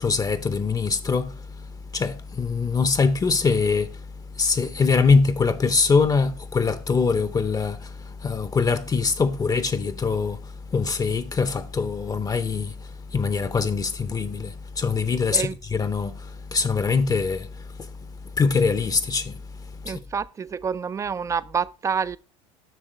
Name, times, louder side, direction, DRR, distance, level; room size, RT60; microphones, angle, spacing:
voice 1, 0.0-20.0, left 4 dB, 20° left, 0.6 m, -24 dB
voice 2, 19.8-22.2, right 6 dB, 20° right, 0.3 m, -28 dB
7.5 x 6.2 x 3.1 m
hypercardioid pair, 90°, 17 cm